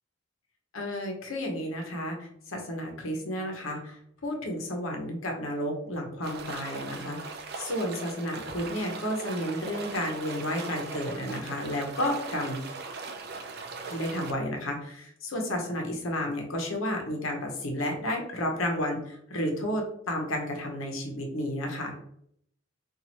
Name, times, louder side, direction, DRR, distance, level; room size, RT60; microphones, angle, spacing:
voice 1, 0.7-12.6 13.8-21.9, left 1 dB, 85° left, 1 dB, 1.0 m, -32 dB
sound 1, 6.2-14.3, right 4 dB, 50° right, 0.4 m, -39 dB
4.1 x 2.6 x 2.9 m, 0.68 s
head